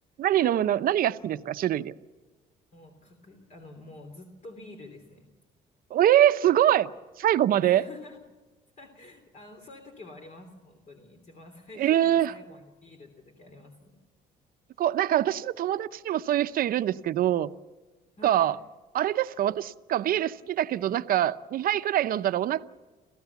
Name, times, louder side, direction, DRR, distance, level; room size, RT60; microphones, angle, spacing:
voice 1, 0.2-1.9 5.9-6.9 7.2-7.8 11.8-12.3 14.8-17.5 18.2-18.6 18.9-22.6, right 12 dB, 60° right, 0.8 m, -24 dB
voice 2, 2.7-5.3 7.6-8.2 8.8-14.0 18.2-18.5, left 2 dB, 45° left, 3.1 m, -48 dB
27.0 x 15.0 x 7.2 m
cardioid pair, 110°, 17 cm